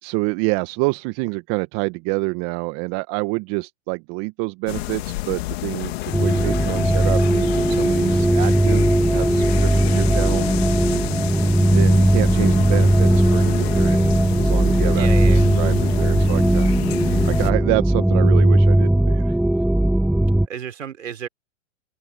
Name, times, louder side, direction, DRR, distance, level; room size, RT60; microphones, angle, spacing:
voice 1, 0.0-10.5 11.6-15.1 15.6-19.4, right 27 dB, 40° right, 1.4 m, -27 dB
sound 1, 4.7-17.5, left 19 dB, 55° left, 2.5 m, -30 dB
Run, 5.4-13.0, left 13 dB, 30° left, 7.5 m, -42 dB
sound 2, 6.1-20.5, right 1 dB, ahead, 0.3 m, -18 dB
voice 2, 14.9-15.6 20.4-21.3, right 8 dB, 80° right, 5.2 m, -32 dB
hypercardioid pair, 120°, 38 cm